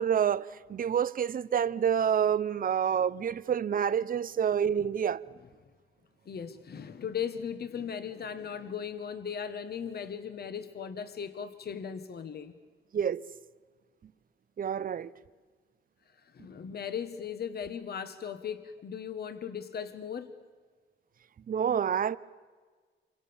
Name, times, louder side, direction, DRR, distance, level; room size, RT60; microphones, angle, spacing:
voice 1, 0.0-5.2 12.9-13.2 14.6-15.1 21.5-22.2, right 8 dB, 45° right, 0.7 m, -28 dB
voice 2, 6.2-12.5 16.3-20.4, left 7 dB, 50° left, 1.4 m, -37 dB
28.5 x 25.5 x 7.1 m
wide cardioid pair, 160°, 20 cm